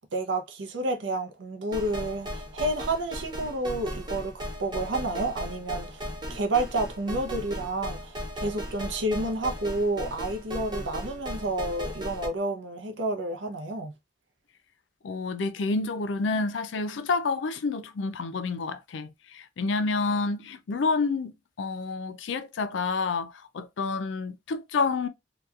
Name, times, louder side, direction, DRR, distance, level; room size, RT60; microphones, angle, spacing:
voice 1, 0.1-6.0 6.3-13.9, right 2 dB, 85° right, 0.6 m, -30 dB
sound 1, 1.7-12.3, equal, 25° right, 0.8 m, -37 dB
voice 2, 15.0-25.1, left 4 dB, 85° left, 0.4 m, -29 dB
2.9 x 2.3 x 2.3 m
head